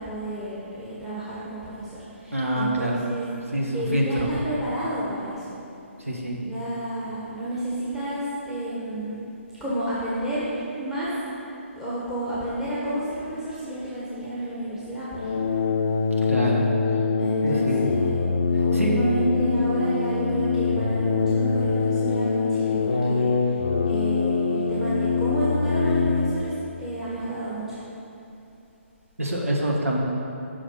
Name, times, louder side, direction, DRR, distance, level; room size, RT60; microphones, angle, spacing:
voice 1, 0.0-1.9 2.2-3.2 3.7-5.5 6.4-9.2 9.6-11.1 11.7-15.4 17.2-18.3 18.6-23.3 23.9-26.5 26.8-27.8, right 1 dB, 5° right, -10 dB, 1.2 m, -30 dB
voice 2, 2.3-3.0 3.5-4.3 6.1-6.4 16.3-16.6 17.4-17.9 18.7-18.9 29.2-30.0, right 1 dB, 90° right, -2 dB, 1.3 m, -25 dB
sound 1, 15.1-26.4, left 4 dB, 55° left, 0.5 m, -23 dB
5.7 x 5.0 x 5.6 m, 2.8 s
figure-of-eight pair, 140°, 7 cm